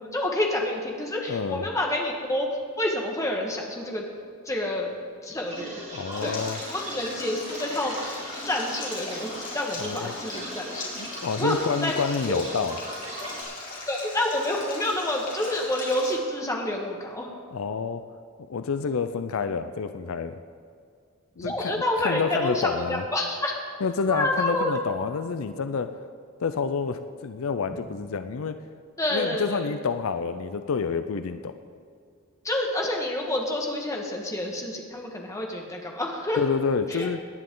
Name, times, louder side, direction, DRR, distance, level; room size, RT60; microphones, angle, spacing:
voice 1, 0.0-2.5 2.8-4.1 4.4-4.9 5.2-5.8 6.2-6.4 6.7-7.9 8.4-10.9 11.4-11.5 11.8-11.9 12.3-12.4 13.9-17.3 21.4-23.5 24.1-24.7 29.0-29.6 32.4-36.4 36.9-37.1, left 1 dB, 15° left, 0 dB, 1.6 m, -28 dB
voice 2, 1.3-1.7 5.9-6.6 9.8-10.1 11.0-12.8 17.5-18.0 18.5-20.4 21.4-23.0 23.8-25.9 26.4-28.6 29.1-31.5 36.4-37.2, left 5 dB, 75° left, 10 dB, 0.5 m, -28 dB
sound 1, 5.4-13.4, right 1 dB, 30° right, 3.3 m, -40 dB
Stream, 6.1-16.1, left 3 dB, 40° left, 3.1 m, -39 dB
18.5 x 10.5 x 3.9 m, 2.2 s
head